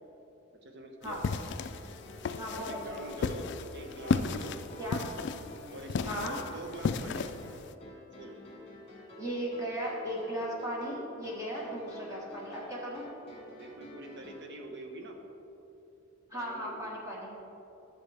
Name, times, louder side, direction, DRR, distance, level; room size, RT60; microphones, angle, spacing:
voice 1, 0.6-1.2 2.6-4.6 5.7-7.5 8.2-8.4 13.4-15.2 16.3-16.9, right 1 dB, 55° right, 3 dB, 1.0 m, -45 dB
sound 1, 1.0-7.7, left 5 dB, 55° left, 0.3 m, -35 dB
sound 2, 1.6-14.5, left 1 dB, 30° left, 1.7 m, -49 dB
voice 2, 2.3-2.8 4.8-5.0 6.1-6.4 9.2-13.0 16.3-17.4, equal, 15° right, -4 dB, 1.4 m, -36 dB
12.5 x 6.6 x 3.4 m, 3.0 s
head